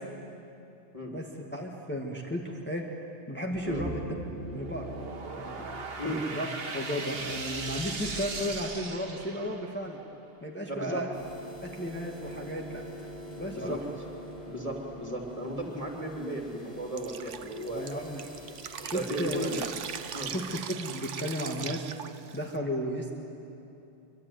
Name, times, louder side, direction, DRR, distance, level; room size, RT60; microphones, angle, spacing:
voice 1, 1.5-2.8 3.3-4.1 4.5-4.9 5.4-5.7 6.3-6.5 6.7-10.0 10.4-11.1 11.6-12.8 13.4-13.8 17.7-18.3 18.8-19.4 20.3-21.8 22.3-23.1, equal, 10° left, -1 dB, 1.9 m, -34 dB
sound 1, 3.5-9.8, right 3 dB, 55° right, 1.7 m, -38 dB
voice 2, 5.9-6.2 10.7-11.0 13.5-13.8 14.5-18.0 18.5-19.6 20.1-20.3, right 1 dB, 30° right, 1 dB, 3.3 m, -35 dB
sound 2, 11.1-20.3, equal, 45° left, 7.8 m, -46 dB
Drip, 17.0-22.6, right 8 dB, 90° right, 1.2 m, -40 dB
24.5 x 23.5 x 9.7 m, 2.8 s
omnidirectional pair, 1.2 m